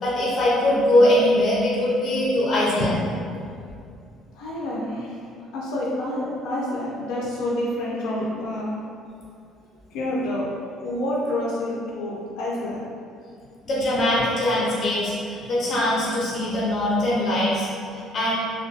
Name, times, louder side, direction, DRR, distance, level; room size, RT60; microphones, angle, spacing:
voice 1, 0.0-3.0 13.7-18.3, left 1 dB, 30° left, -7 dB, 0.6 m, -22 dB
voice 2, 4.3-5.2 5.5-8.8 9.9-10.5 10.8-12.8 17.9-18.0, left 1 dB, 70° left, -5 dB, 0.4 m, -28 dB
2.5 x 2.2 x 2.4 m, 2.4 s
cardioid pair, 175°, 0 cm